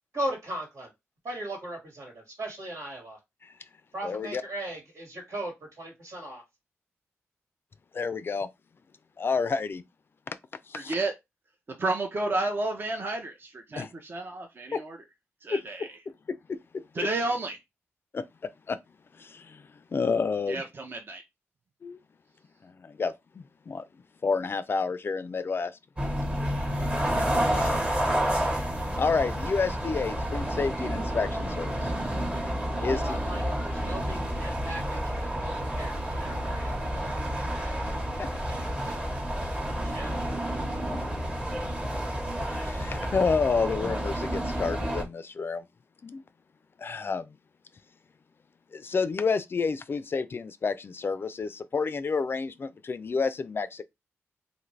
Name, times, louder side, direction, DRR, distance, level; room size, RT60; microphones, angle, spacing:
voice 1, 0.1-0.9 1.2-3.2 3.9-6.4 32.8-37.8 38.3-39.2 39.8-40.2, right 1 dB, 75° right, 1.6 m, -38 dB
voice 2, 4.0-4.4 7.9-8.5 9.2-9.8 10.3-10.4 10.7-10.9 13.7-13.9 14.7-14.8 15.5-15.9 16.3-16.4 17.0-17.1 18.1-18.2 18.7-18.8 19.1-20.6 21.8-22.0 22.6-23.8 24.2-25.7 27.4-27.8 28.9-31.9 32.8-33.2 38.2-38.3 42.5-45.7 46.0-46.2 46.8-47.4 48.7-53.8, left 4 dB, 45° left, 0.3 m, -30 dB
voice 3, 10.7-11.1 11.8-15.0 15.4-15.9 16.9-17.6 20.5-21.2, right 2 dB, 45° right, 0.6 m, -31 dB
sound 1, 26.0-45.0, equal, 20° right, 1.0 m, -30 dB
2.6 x 2.5 x 3.1 m
cardioid pair, 65°, 5 cm